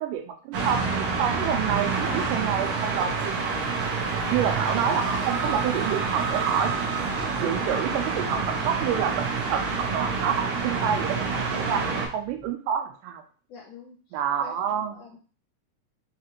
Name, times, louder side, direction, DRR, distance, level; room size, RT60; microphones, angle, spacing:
voice 1, 0.0-3.6 4.3-6.7 7.2-13.2 14.1-15.2, right 8 dB, 90° right, 4 dB, 2.3 m, -28 dB
sound 1, 0.5-12.1, right 4 dB, 65° right, 1.6 m, -27 dB
sound 2, 7.0-12.5, left 3 dB, 60° left, 1.6 m, -48 dB
voice 2, 13.5-15.2, left 4 dB, 80° left, -3 dB, 1.4 m, -48 dB
5.7 x 2.4 x 3.0 m, 0.38 s
omnidirectional pair, 3.7 m